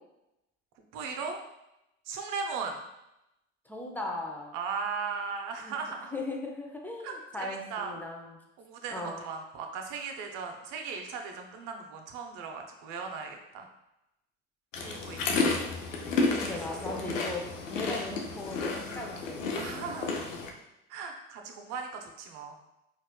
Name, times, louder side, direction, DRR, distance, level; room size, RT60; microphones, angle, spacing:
voice 1, 0.9-1.4 2.1-2.8 4.5-6.2 7.0-7.9 8.6-13.7 14.8-15.5 16.3-16.6 16.9-17.0 19.5-20.2 20.9-22.5, right 5 dB, 55° right, 3 dB, 0.7 m, -37 dB
voice 2, 3.7-4.5 5.6-5.7 6.1-8.4 8.9-9.2 15.3-15.6 16.3-19.4, left 2 dB, 5° left, 0 dB, 0.6 m, -38 dB
sound 1, 14.7-20.5, left 3 dB, 90° left, 0.5 m, -31 dB
4.2 x 2.6 x 2.2 m, 0.88 s
hypercardioid pair, 70°, 37 cm